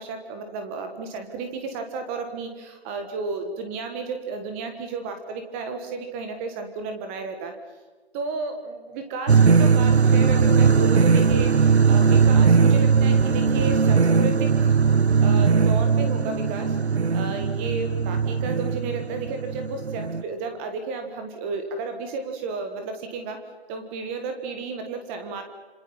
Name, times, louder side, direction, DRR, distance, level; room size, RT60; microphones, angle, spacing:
voice 1, 0.0-7.5 8.1-14.8 15.2-16.8 17.1-23.4 23.7-25.4, right 4 dB, 10° right, 6 dB, 1.5 m, -32 dB
sound 1, 9.3-20.2, right 5 dB, 80° right, 1.4 m, -19 dB
27.0 x 26.5 x 5.6 m, 1.3 s
figure-of-eight pair, 160°, 33 cm